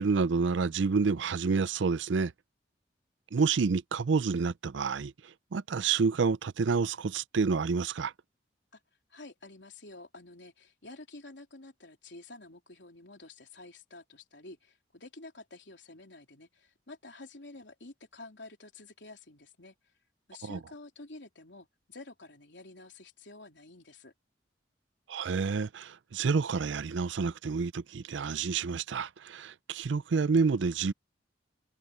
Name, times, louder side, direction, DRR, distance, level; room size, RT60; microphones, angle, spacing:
voice 1, 0.0-2.3 3.3-8.1 20.4-20.6 25.1-30.9, right 5 dB, 75° right, 0.5 m, -29 dB
voice 2, 9.1-19.9 20.3-24.1, left 2 dB, 70° left, 3.5 m, -50 dB
head